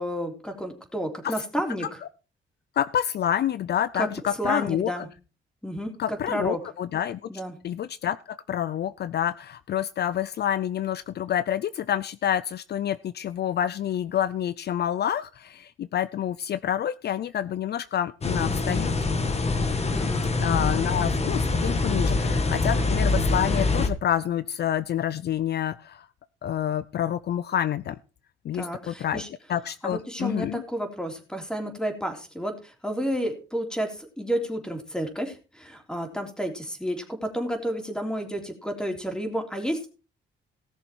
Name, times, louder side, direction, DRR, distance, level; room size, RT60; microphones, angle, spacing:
voice 1, 0.0-2.0 3.9-4.1 4.4-5.1 5.6-6.6 7.3-7.6 19.9-20.2 22.6-22.7 28.5-29.3 29.8-39.9, equal, 5° left, 4 dB, 3.6 m, -31 dB
voice 2, 2.8-4.9 6.0-7.2 7.6-18.9 20.4-26.1 26.4-28.0 28.4-29.2 29.5-30.6, left 10 dB, 55° left, 16 dB, 0.6 m, -28 dB
sound 1, 18.2-23.9, left 3 dB, 30° left, 1.7 m, -24 dB
18.0 x 6.9 x 4.6 m, 0.34 s
cardioid pair, 90°, 20 cm